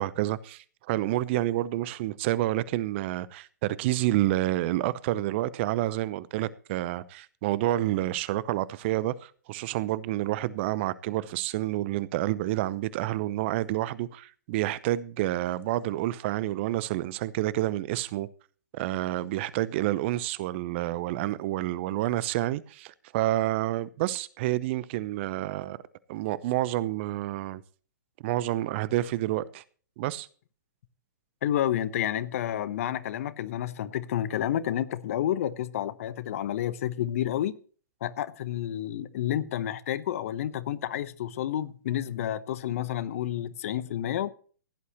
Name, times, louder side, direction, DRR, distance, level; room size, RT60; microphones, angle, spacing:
voice 1, 0.0-18.3 18.7-25.8 26.1-27.6 28.2-29.6 30.0-30.3, right 15 dB, 40° right, 0.7 m, -29 dB
voice 2, 31.4-37.6 38.0-44.3, left 11 dB, 50° left, 1.0 m, -30 dB
16.0 x 11.0 x 3.0 m
figure-of-eight pair, 120°, 10 cm